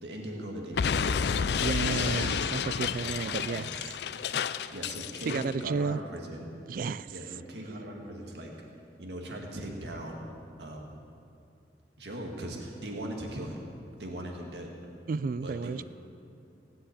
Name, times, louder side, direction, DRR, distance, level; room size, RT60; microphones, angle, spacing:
voice 1, 0.0-2.4 3.0-3.8 4.7-6.5 7.1-8.5 9.0-10.2 10.6-11.0 12.0-13.6 14.0-14.7 15.4-15.8, right 1 dB, 70° right, 1 dB, 1.9 m, -40 dB
Explosion, 0.7-5.5, left 6 dB, 65° left, 0.4 m, -30 dB
voice 2, 1.6-3.6 5.3-6.0 6.7-7.1 15.1-15.8, right 4 dB, 50° right, 17 dB, 0.3 m, -32 dB
17.0 x 7.7 x 8.5 m, 2.5 s
head